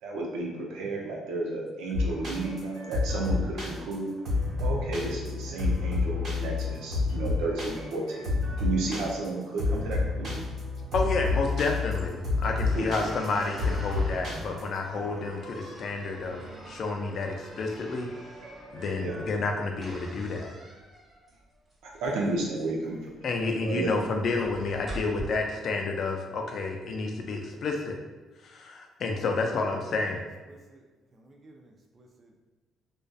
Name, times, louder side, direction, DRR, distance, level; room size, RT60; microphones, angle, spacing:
voice 1, 0.0-4.1 4.6-10.4 12.4-13.1 19.0-19.2 21.8-23.3 23.6-23.9, right 2 dB, 90° right, -1 dB, 0.5 m, -32 dB
sound 1, 1.9-19.4, left 3 dB, 60° right, 1.4 m, -31 dB
voice 2, 10.9-16.4 16.7-18.1 18.7-20.5 23.2-28.0 28.4-30.2, left 3 dB, 55° left, 2 dB, 0.4 m, -30 dB
sound 2, 12.0-25.2, right 1 dB, 5° right, 0.8 m, -47 dB
voice 3, 29.3-30.8 31.1-32.4, right 2 dB, 40° right, 2 dB, 0.4 m, -54 dB
2.5 x 2.2 x 2.3 m, 1.2 s
cardioid pair, 120°, 0 cm